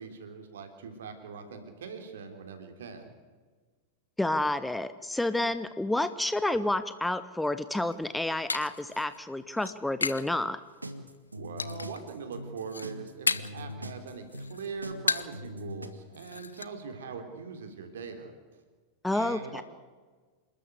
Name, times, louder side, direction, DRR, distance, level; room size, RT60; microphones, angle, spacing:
voice 1, 0.0-3.1 11.3-18.6 19.1-19.6, right 5 dB, 60° right, 6 dB, 3.6 m, -42 dB
voice 2, 4.2-10.6 19.0-19.6, left 1 dB, 5° left, 13 dB, 0.8 m, -29 dB
sound 1, 7.8-10.3 10.7-11.2 11.6-12.1 12.4-13.7 14.0-15.5 15.8-15.9 16.1-16.7, left 4 dB, 75° left, 0.7 m, -34 dB
sound 2, 10.8-15.9, left 1 dB, 80° right, 1.7 m, -41 dB
28.0 x 13.0 x 8.3 m, 1.4 s
figure-of-eight pair, 90°, 0 cm